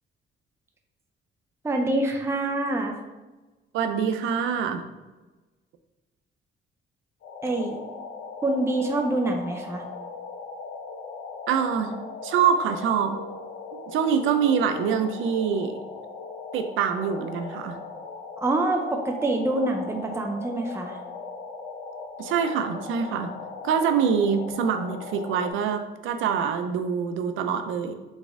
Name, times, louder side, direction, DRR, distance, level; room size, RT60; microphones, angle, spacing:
voice 1, 1.6-3.0 7.4-7.8 8.4-9.8 18.4-21.0, right 2 dB, 15° right, 2 dB, 0.6 m, -26 dB
voice 2, 3.7-4.8 11.5-12.0 12.2-13.2 13.9-15.8 16.5-17.8 22.2-23.3 23.6-27.9, right 7 dB, 85° right, 8 dB, 0.5 m, -25 dB
sound 1, 7.2-25.5, left 4 dB, 70° left, 0.9 m, -39 dB
4.0 x 3.5 x 3.5 m, 1.2 s
cardioid pair, 90°, 20 cm